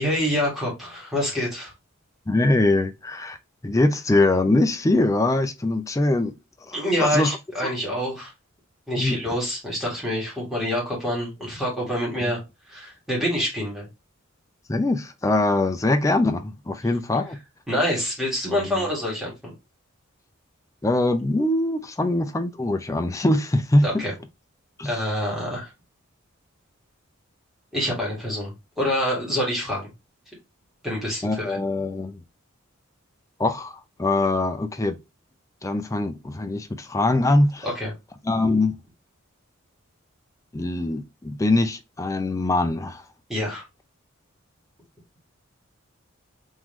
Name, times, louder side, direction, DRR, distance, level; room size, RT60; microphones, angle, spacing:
voice 1, 0.0-1.7 6.7-8.3 8.9-12.4 12.7-13.9 17.7-19.5 23.8-24.1 24.8-25.7 27.7-29.9 30.8-31.6 37.6-37.9 43.3-43.6, equal, ahead, 1.9 m, -26 dB
voice 2, 2.3-3.4 3.6-6.3 6.6-7.3 7.6-7.7 9.0-9.2 14.7-17.4 18.6-18.8 20.8-24.0 24.8-24.9 31.2-32.2 33.4-35.0 35.6-37.7 38.3-38.8 40.5-43.0, left 2 dB, 15° left, 0.4 m, -22 dB
3.7 x 3.0 x 3.1 m
head